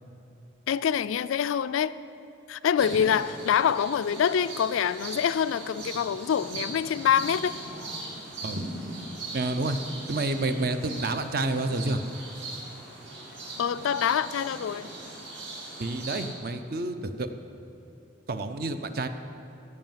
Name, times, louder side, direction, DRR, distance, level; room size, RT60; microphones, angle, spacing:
voice 1, 0.7-2.0 2.5-7.5 13.6-14.9, left 8 dB, 85° left, 15 dB, 0.3 m, -25 dB
sound 1, 2.8-16.3, right 2 dB, 65° right, 2.6 m, -39 dB
voice 2, 9.3-9.8 10.1-12.0 15.8-17.3 18.3-19.1, right 2 dB, 50° right, 9 dB, 0.6 m, -29 dB
14.5 x 5.5 x 7.4 m, 2.8 s
head